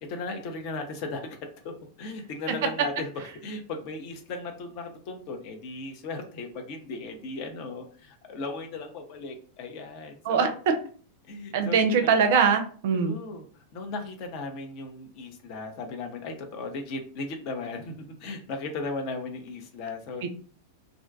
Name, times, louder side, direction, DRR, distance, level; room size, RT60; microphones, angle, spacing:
voice 1, 0.0-10.5 11.2-12.1 12.9-20.3, left 3 dB, 45° left, 4 dB, 0.5 m, -37 dB
voice 2, 10.3-10.8 11.5-13.1 20.2-20.3, right 6 dB, 50° right, 7 dB, 0.4 m, -22 dB
2.4 x 2.2 x 2.5 m, 0.42 s
figure-of-eight pair, 90°, 0 cm